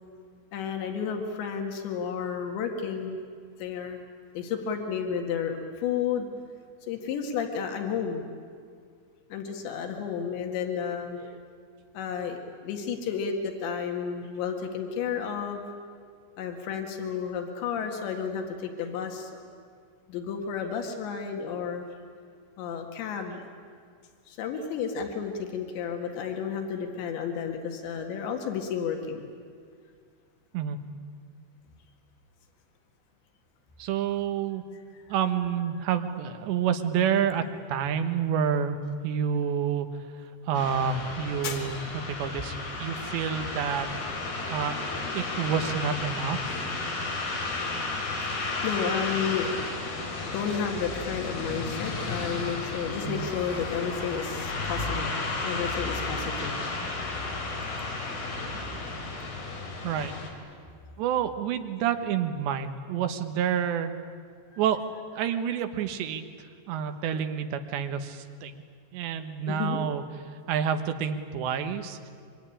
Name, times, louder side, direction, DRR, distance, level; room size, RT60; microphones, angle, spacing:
voice 1, 0.5-3.2 3.6-4.0 4.4-6.3 6.9-8.3 9.3-11.2 11.9-15.6 16.4-19.4 20.1-21.8 22.6-23.4 24.3-29.3 41.4-41.6 47.5-56.7 64.5-64.6 69.5-69.8, left 7 dB, 90° left, 4 dB, 4.1 m, -32 dB
voice 2, 33.8-34.6 35.1-37.4 37.7-39.9 40.5-41.8 42.1-43.9 44.5-44.8 45.1-46.4 53.1-53.3 59.8-60.1 61.0-63.9 64.6-64.8 65.1-66.3 66.7-68.6 68.9-70.0 70.5-72.0, right 8 dB, 85° right, 7 dB, 3.6 m, -28 dB
sound 1, 40.5-60.3, left 3 dB, 60° left, 5.2 m, -33 dB
24.5 x 24.0 x 10.0 m, 2.1 s
omnidirectional pair, 5.0 m